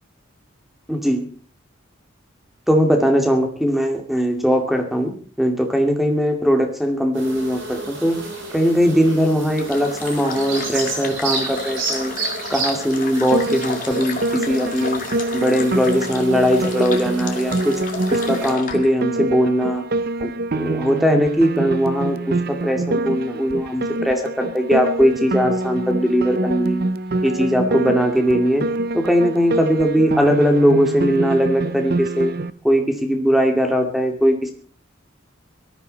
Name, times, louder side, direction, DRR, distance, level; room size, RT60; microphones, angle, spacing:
voice 1, 0.9-1.3 2.7-12.1 12.5-15.0 15.3-17.8 18.1-19.8 20.2-26.9 27.2-28.7 28.9-32.3 32.6-34.5, equal, ahead, 4 dB, 2.3 m, -19 dB
sound 1, 7.1-18.5, right 3 dB, 75° right, 6.7 m, -31 dB
sound 2, 9.6-18.9, left 5 dB, 45° left, 2.1 m, -33 dB
Piano, 13.3-32.5, right 2 dB, 50° right, 0.7 m, -25 dB
18.5 x 13.5 x 4.1 m, 0.41 s
head